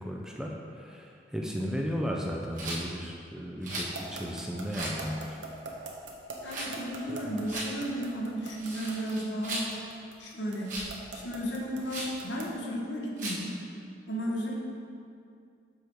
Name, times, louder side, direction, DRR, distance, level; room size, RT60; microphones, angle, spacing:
voice 1, 0.0-5.4 7.1-7.3, equal, 5° right, -1 dB, 0.4 m, -35 dB
Rattle, 2.5-2.8 3.6-3.9 4.7-5.0 6.4-6.7 7.4-7.7 8.5-9.7 10.6-10.9 11.9-12.2 13.2-13.5, right 2 dB, 40° right, 1.6 m, -37 dB
sound 1, 3.7-12.6, right 3 dB, 75° right, 1.0 m, -42 dB
voice 2, 6.4-9.7 10.2-10.8 11.1-13.5 14.1-14.5, equal, 75° left, -2 dB, 1.2 m, -34 dB
6.8 x 5.1 x 4.6 m, 2.4 s
head